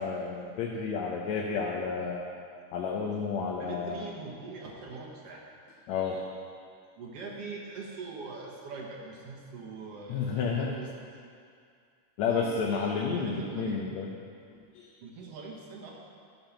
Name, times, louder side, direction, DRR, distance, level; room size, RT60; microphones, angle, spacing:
voice 1, 0.0-2.2 2.7-4.0 5.9-6.3 10.1-10.7 12.2-14.1 14.7-14.9, left 5 dB, 75° left, -1 dB, 2.0 m, -31 dB
voice 2, 3.6-5.4 7.0-10.9 12.2-12.6 13.2-13.9 15.0-15.9, right 4 dB, 60° right, -2 dB, 2.0 m, -42 dB
12.0 x 5.6 x 5.9 m, 2.3 s
omnidirectional pair, 3.4 m